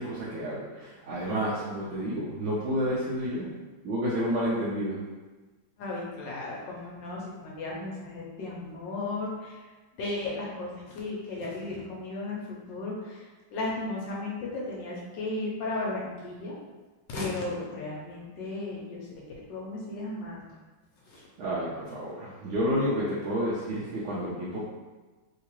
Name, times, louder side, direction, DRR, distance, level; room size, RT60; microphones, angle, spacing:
voice 1, 0.0-3.5 3.8-5.0 21.4-24.7, equal, 85° right, -8 dB, 1.5 m, -30 dB
voice 2, 5.8-9.6 10.0-16.5 17.1-19.1 19.5-20.5 21.1-21.2, left 2 dB, 70° left, -4 dB, 1.3 m, -35 dB
3.5 x 2.8 x 2.9 m, 1.2 s
omnidirectional pair, 2.2 m